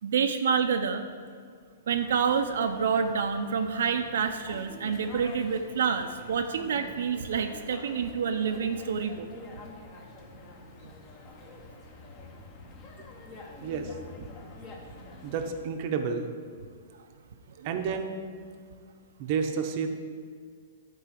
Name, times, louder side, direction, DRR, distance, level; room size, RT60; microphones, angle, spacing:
voice 1, 0.0-1.0 1.9-9.3 10.8-10.9 17.6-17.7, right 6 dB, 75° right, 6 dB, 0.7 m, -28 dB
sound 1, 1.9-15.6, left 2 dB, 25° left, 1.2 m, -46 dB
voice 2, 13.6-13.9 15.2-16.3 17.6-18.1 19.2-19.9, right 6 dB, 35° right, 5 dB, 0.9 m, -30 dB
11.5 x 4.7 x 7.7 m, 2.1 s
hypercardioid pair, 165°, 0 cm